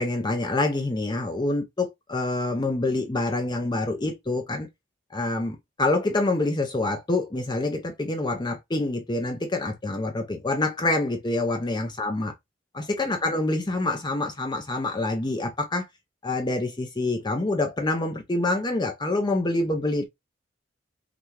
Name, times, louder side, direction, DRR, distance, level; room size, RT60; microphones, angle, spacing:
voice 1, 0.0-4.7 5.1-12.3 12.7-15.9 16.2-20.1, left 2 dB, 25° left, 0.6 m, -26 dB
5.9 x 2.3 x 3.2 m
head